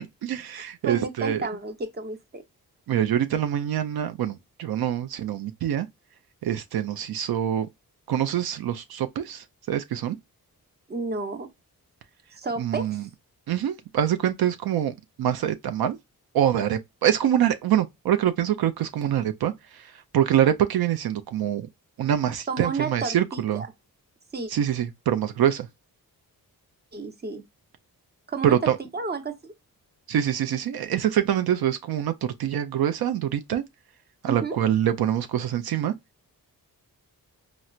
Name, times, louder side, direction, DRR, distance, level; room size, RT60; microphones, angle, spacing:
voice 1, 0.0-1.4 2.9-5.9 6.4-7.7 8.1-10.2 12.6-13.0 13.5-16.0 16.3-21.7 22.0-23.6 24.5-25.7 28.4-28.8 30.1-32.1 32.4-33.6 34.2-35.9, right 10 dB, 85° right, 0.5 m, -25 dB
voice 2, 0.5-2.4 10.9-11.5 12.4-13.0 22.5-23.7 24.3-24.5 26.9-27.4 28.3-29.5 34.3-34.6, right 4 dB, 30° right, 0.8 m, -32 dB
4.2 x 2.0 x 2.4 m
cardioid pair, 75°, 36 cm